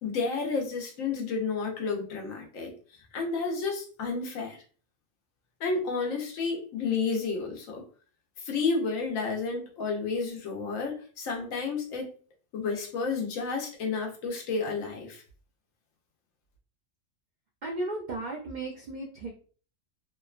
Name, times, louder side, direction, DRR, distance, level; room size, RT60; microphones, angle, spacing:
voice 1, 0.0-2.7 3.1-4.6 5.6-7.8 8.4-12.1 12.5-15.2, left 4 dB, 80° left, 2 dB, 1.1 m, -31 dB
voice 2, 17.6-19.3, right 2 dB, 75° right, 0 dB, 0.4 m, -35 dB
2.8 x 2.2 x 2.3 m, 0.41 s
omnidirectional pair, 1.4 m